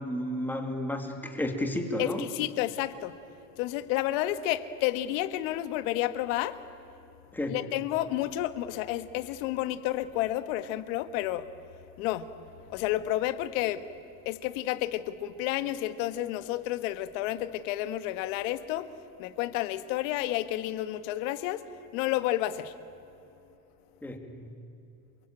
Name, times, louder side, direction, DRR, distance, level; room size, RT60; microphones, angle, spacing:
voice 1, 0.0-2.3 7.3-7.6 24.0-24.5, left 1 dB, 5° left, 4 dB, 2.4 m, -32 dB
voice 2, 2.0-3.1 3.6-6.6 7.5-11.5 12.0-12.3 12.7-13.8 14.2-18.9 19.2-21.6 21.9-22.7, left 14 dB, 60° left, 12 dB, 1.6 m, -30 dB
28.0 x 23.0 x 9.0 m, 2.9 s
supercardioid pair, 155°, 44 cm